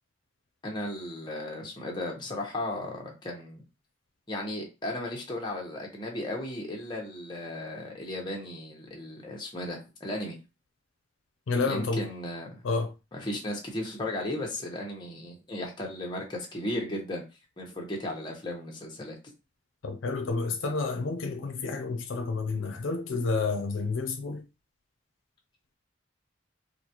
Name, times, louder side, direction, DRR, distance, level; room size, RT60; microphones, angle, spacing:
voice 1, 0.6-3.6 4.3-10.4 11.6-12.6 13.1-17.2 17.6-19.2, left 1 dB, 25° left, 1.0 m, -35 dB
voice 2, 11.5-12.0 12.6-12.9 19.8-24.4, left 3 dB, 90° left, 0.5 m, -30 dB
3.9 x 2.3 x 2.9 m
head